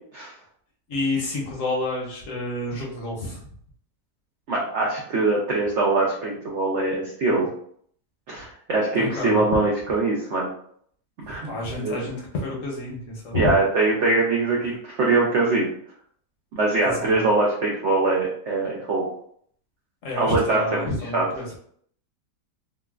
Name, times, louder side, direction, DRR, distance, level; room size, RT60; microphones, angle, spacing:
voice 1, 0.9-3.4 8.9-9.6 11.2-13.5 16.9-17.3 20.0-21.5, left 2 dB, 60° left, -3 dB, 1.0 m, -29 dB
voice 2, 4.5-7.5 8.3-10.5 11.3-12.0 13.3-15.7 16.5-19.1 20.2-21.2, right 3 dB, 70° right, -3 dB, 0.6 m, -23 dB
3.7 x 2.1 x 2.3 m, 0.63 s
omnidirectional pair, 1.8 m